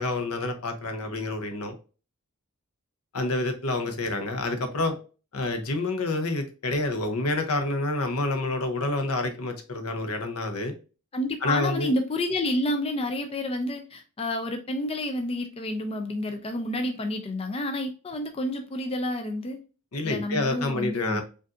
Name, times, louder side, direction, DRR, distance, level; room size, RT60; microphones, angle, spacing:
voice 1, 0.0-1.7 3.1-5.0 5.3-10.7 11.4-11.9 19.9-21.2, left 2 dB, 80° left, 0.8 m, -28 dB
voice 2, 11.1-19.6 20.0-21.2, left 1 dB, 25° left, 0.4 m, -29 dB
5.0 x 2.6 x 2.4 m
head